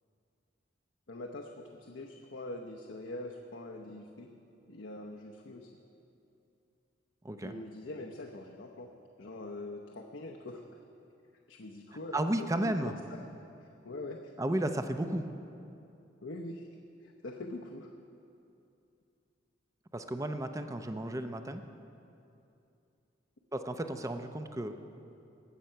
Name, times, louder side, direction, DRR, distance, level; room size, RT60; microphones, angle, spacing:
voice 1, 1.1-4.3 4.7-5.7 7.4-8.9 9.2-10.8 11.5-13.2 13.8-14.3 16.2-16.7 17.0-17.9, left 2 dB, 80° left, 0 dB, 0.8 m, -43 dB
voice 2, 12.1-12.9 14.4-15.3 19.9-21.6 23.5-24.7, right 1 dB, 15° right, 8 dB, 0.6 m, -33 dB
19.5 x 7.5 x 5.6 m, 2.7 s
head